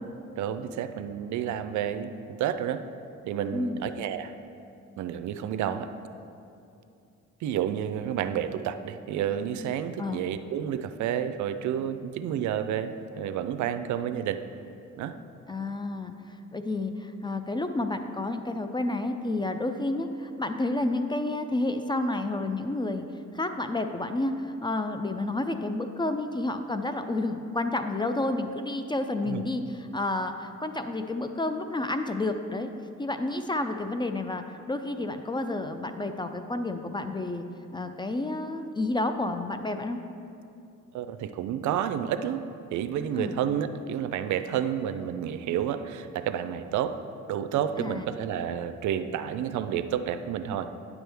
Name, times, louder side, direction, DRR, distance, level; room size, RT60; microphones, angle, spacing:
voice 1, 0.4-2.8 3.3-4.3 5.0-5.9 7.4-14.4 15.0-15.2 29.2-29.4 40.9-42.4 42.7-47.0 47.3-50.7, right 9 dB, 70° right, 10 dB, 0.5 m, -30 dB
voice 2, 3.5-3.9 10.0-10.2 15.5-23.0 23.3-32.7 33.0-37.4 37.7-40.0 43.1-43.4 47.8-48.1, left 2 dB, 15° left, 7 dB, 0.3 m, -30 dB
9.6 x 6.2 x 3.4 m, 2.6 s
cardioid pair, 90°, 30 cm